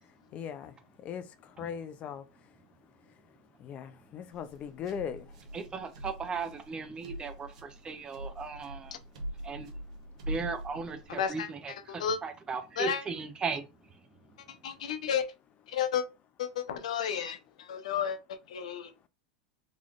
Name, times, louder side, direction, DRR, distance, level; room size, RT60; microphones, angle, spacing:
voice 1, 0.3-0.7 1.0-1.2 1.6-2.2 3.6-5.3, left 8 dB, 40° left, 0.4 m, -38 dB
sound 1, 4.3-11.3, right 1 dB, 80° right, 1.0 m, -43 dB
voice 2, 5.5-9.0 9.4-9.7 10.3-13.6, right 5 dB, 25° right, 0.7 m, -37 dB
voice 3, 11.1-11.5 11.9-12.2 12.8-13.0 14.6-15.3 15.7-16.0 16.4-19.1, left 8 dB, 80° left, 0.6 m, -32 dB
3.9 x 3.1 x 2.4 m
hypercardioid pair, 105°, 4 cm